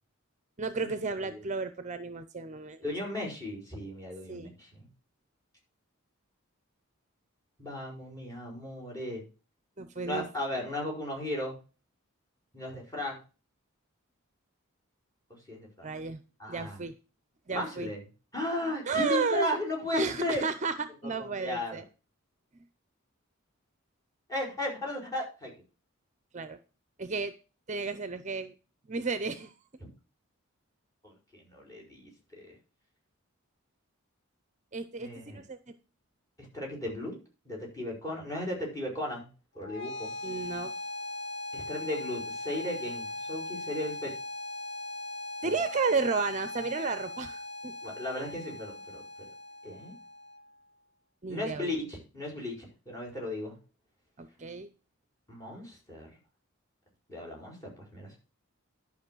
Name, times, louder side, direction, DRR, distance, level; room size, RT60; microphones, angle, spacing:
voice 1, 0.6-2.8 4.3-4.5 9.8-10.3 15.8-16.2 16.5-16.9 17.5-17.9 18.9-19.5 19.9-21.8 26.3-26.6 27.0-27.3 27.7-28.5 28.9-29.5 34.7-35.7 40.2-40.7 45.4-47.7 51.2-51.7 54.2-54.7, right 4 dB, 35° right, 11 dB, 0.6 m, -32 dB
voice 2, 2.8-4.9 7.6-9.2 10.0-11.6 12.5-13.2 15.3-15.9 16.4-16.8 17.5-18.0 18.3-20.5 21.0-21.8 24.3-25.5 29.8-29.9 31.0-32.5 35.0-35.4 36.5-37.1 37.4-39.3 39.5-40.1 41.5-44.1 45.4-45.5 47.8-49.0 49.6-49.9 51.3-53.5 55.3-56.1 57.1-58.2, left 1 dB, 15° left, -1 dB, 5.1 m, -36 dB
sound 1, 39.6-50.6, left 1 dB, 55° left, 1.4 m, -39 dB
11.5 x 5.5 x 6.1 m, 0.34 s
head